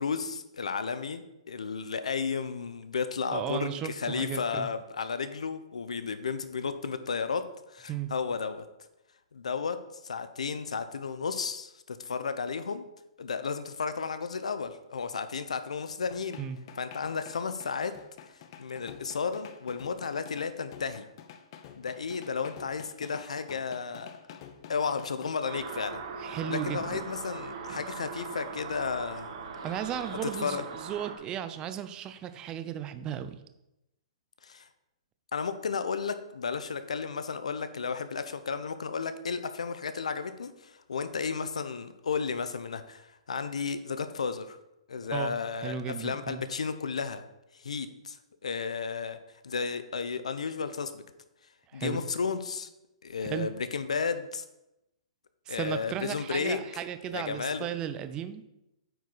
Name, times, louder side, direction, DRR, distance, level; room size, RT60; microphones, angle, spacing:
voice 1, 0.0-8.6 9.3-12.8 13.2-16.4 16.8-18.0 18.6-21.1 21.8-24.4 24.7-26.0 26.5-29.3 29.6-29.7 30.2-30.6 34.4-34.7 35.3-44.6 44.9-47.2 47.5-49.2 49.4-51.0 51.7-52.7 53.0-54.4 55.5-56.6 57.1-57.7, left 5 dB, 85° left, 11 dB, 0.7 m, -33 dB
voice 2, 3.3-4.7 7.9-8.1 16.4-16.6 26.2-27.0 29.6-33.3 45.1-45.3 45.6-46.4 51.7-52.0 53.2-53.5 55.5-58.5, right 9 dB, 25° right, 10 dB, 0.6 m, -35 dB
sound 1, 16.1-25.3, left 8 dB, 45° left, 0.8 m, -49 dB
sound 2, 25.5-31.2, right 5 dB, 50° right, 1.5 m, -40 dB
9.2 x 4.7 x 4.1 m, 0.90 s
hypercardioid pair, 135°, 3 cm